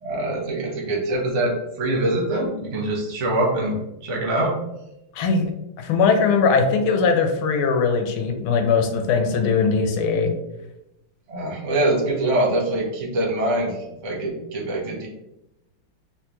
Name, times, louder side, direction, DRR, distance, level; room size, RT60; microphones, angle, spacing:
voice 1, 0.0-3.8 4.0-4.5 11.3-13.8 14.0-15.1, right 1 dB, 60° right, -2 dB, 0.7 m, -24 dB
voice 2, 5.2-5.5 5.8-10.3, left 5 dB, 90° left, 5 dB, 1.4 m, -20 dB
3.7 x 2.2 x 2.9 m, 0.90 s
omnidirectional pair, 2.3 m